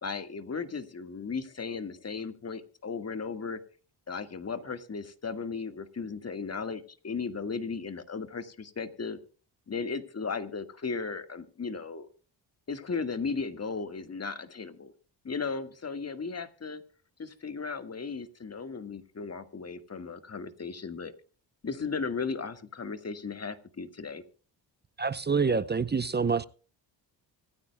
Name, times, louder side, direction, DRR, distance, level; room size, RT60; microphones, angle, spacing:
voice 1, 0.0-3.6 4.1-9.2 9.7-12.1 12.7-14.9 15.2-16.8 17.2-21.1 21.6-24.2, left 5 dB, 35° left, 1.7 m, -36 dB
voice 2, 25.0-26.4, right 5 dB, 25° right, 0.6 m, -27 dB
25.5 x 9.7 x 2.2 m
cardioid pair, 70°, 44 cm